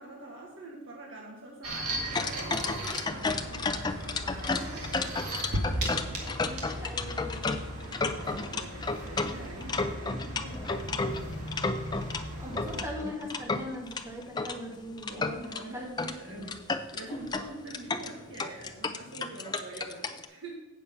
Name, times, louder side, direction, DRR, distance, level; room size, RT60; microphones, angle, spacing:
voice 1, 0.0-4.9 7.9-11.3 15.1-20.7, right 2 dB, 55° right, -3 dB, 1.6 m, -45 dB
sound 1, 1.6-12.8, right 1 dB, 80° right, 2.0 m, -37 dB
sound 2, 2.1-12.2 12.6-14.6 15.0-15.6 16.0-16.2 16.4-20.3, left 3 dB, 20° left, 0.4 m, -32 dB
voice 2, 6.4-7.5 12.4-16.5, left 1 dB, 15° right, -2 dB, 1.7 m, -41 dB
8.0 x 7.1 x 5.6 m, 1.1 s
head